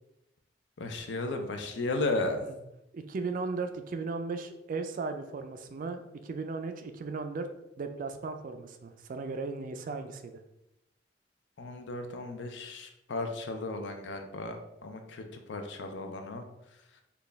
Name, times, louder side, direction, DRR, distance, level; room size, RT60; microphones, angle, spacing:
voice 1, 0.8-2.4 11.6-16.4, left 2 dB, 75° left, 5 dB, 0.5 m, -35 dB
voice 2, 2.9-7.5 7.8-10.4, right 4 dB, 50° right, 7 dB, 0.3 m, -36 dB
4.1 x 2.3 x 3.3 m, 0.87 s
head